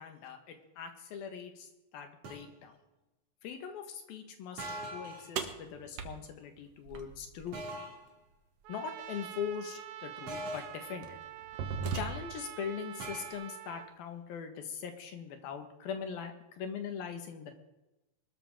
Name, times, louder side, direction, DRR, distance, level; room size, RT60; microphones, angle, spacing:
voice 1, 0.0-1.7 1.9-2.8 3.4-4.7 4.9-7.6 8.7-11.2 11.9-17.6, left 7 dB, 80° left, 6 dB, 3.4 m, -41 dB
sound 1, 2.2-2.5 4.6-5.3 7.5-8.1 10.3-10.9 13.0-13.3, right 1 dB, 45° right, 3.3 m, -41 dB
sound 2, 5.4-7.5 9.4-9.5 10.3-10.5 11.0-12.5, right 6 dB, 60° right, 1.7 m, -38 dB
Trumpet, 8.6-13.9, right 12 dB, 85° right, 1.7 m, -46 dB
22.0 x 13.0 x 3.8 m, 1.0 s
omnidirectional pair, 4.2 m